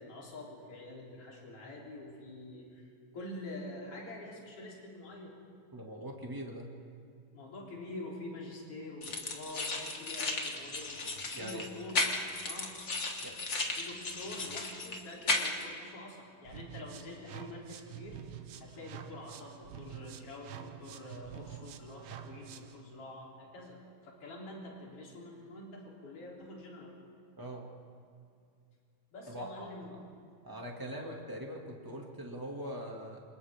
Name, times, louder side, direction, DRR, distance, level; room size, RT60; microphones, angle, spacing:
voice 1, 0.0-2.9 3.1-5.3 7.3-11.0 11.4-11.9 12.4-12.8 13.7-18.2 18.6-23.8 24.0-27.0 29.1-30.0 30.9-31.2, left 2 dB, 40° left, -3 dB, 4.3 m, -46 dB
voice 2, 5.7-6.7 11.3-11.7 13.2-13.3 27.4-27.6 29.3-29.7 30.4-33.2, equal, 10° right, -1 dB, 1.4 m, -42 dB
sound 1, 9.0-15.6, left 3 dB, 70° left, 0.6 m, -35 dB
sound 2, 16.4-22.8, right 10 dB, 70° right, 1.8 m, -47 dB
28.0 x 26.5 x 3.6 m, 2.3 s
omnidirectional pair, 4.0 m